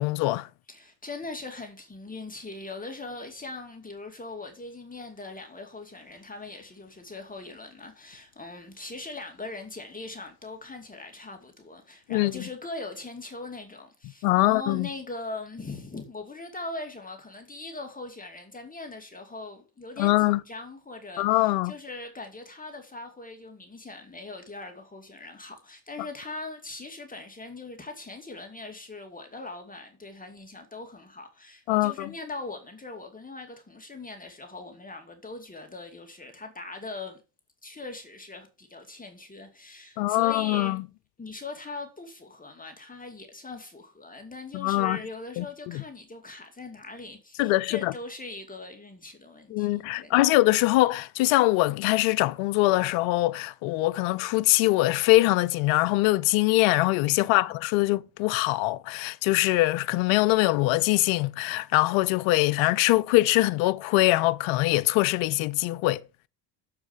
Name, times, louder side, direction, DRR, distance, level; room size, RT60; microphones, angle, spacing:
voice 1, 0.0-0.5 12.1-12.3 14.2-14.9 20.0-20.4 21.2-21.7 31.7-31.9 40.0-40.8 44.5-45.0 45.4-45.8 47.4-47.9 49.5-66.0, left 19 dB, 65° left, 0.8 m, -23 dB
voice 2, 0.7-37.2 37.6-40.8 41.2-50.3 57.2-57.6, left 3 dB, 15° left, 2.6 m, -41 dB
7.4 x 7.2 x 7.3 m
supercardioid pair, 85°, 49 cm